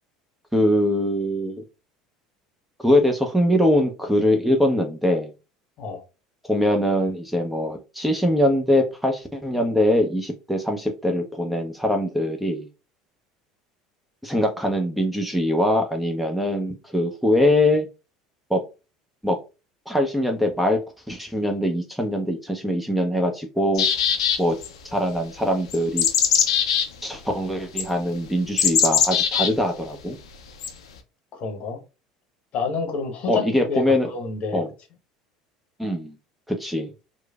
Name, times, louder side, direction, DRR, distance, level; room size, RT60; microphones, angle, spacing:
voice 1, 0.5-1.6 2.8-5.3 6.4-12.7 14.2-17.9 18.5-18.6 19.2-19.4 19.9-20.8 21.1-23.9 24.4-24.6 24.9-26.1 27.0-30.2 33.3-34.1 34.5-34.7 35.8-36.2 36.5-36.9, left 1 dB, ahead, 0.5 m, -22 dB
sound 1, 23.7-24.7 25.7-26.9 27.8-27.9 28.6-29.5 30.6-30.7, left 7 dB, 75° left, 0.4 m, -20 dB
voice 2, 31.3-31.8 32.5-34.6, left 4 dB, 45° left, 0.8 m, -29 dB
3.0 x 2.1 x 2.2 m
figure-of-eight pair, 70°, 3 cm